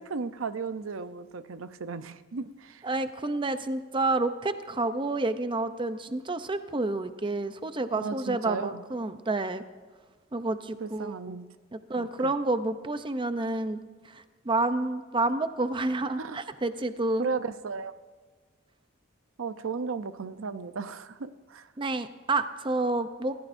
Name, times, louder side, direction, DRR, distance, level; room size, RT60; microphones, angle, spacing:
voice 1, 0.0-2.8 8.0-8.8 10.8-11.5 12.0-12.3 16.2-16.4 17.2-17.9 19.4-21.7, right 4 dB, 85° right, 11 dB, 0.7 m, -35 dB
voice 2, 2.8-9.6 10.3-11.4 11.7-13.8 14.1-17.3 21.8-23.4, right 2 dB, 25° right, 10 dB, 0.6 m, -29 dB
27.5 x 15.0 x 2.6 m, 1.5 s
head